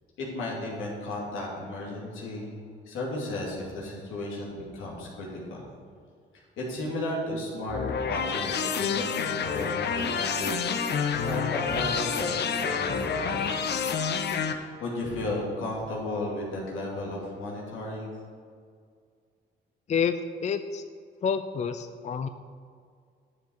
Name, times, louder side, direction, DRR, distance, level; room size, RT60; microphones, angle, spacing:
voice 1, 0.2-5.7 6.3-13.5 14.5-18.1, left 1 dB, 85° left, -3 dB, 2.8 m, -34 dB
sound 1, 7.7-14.5, left 6 dB, 60° left, 0.8 m, -28 dB
voice 2, 19.9-20.8 21.2-22.3, left 6 dB, 35° left, 10 dB, 0.4 m, -28 dB
11.0 x 7.1 x 4.7 m, 2.1 s
cardioid pair, 90°, 20 cm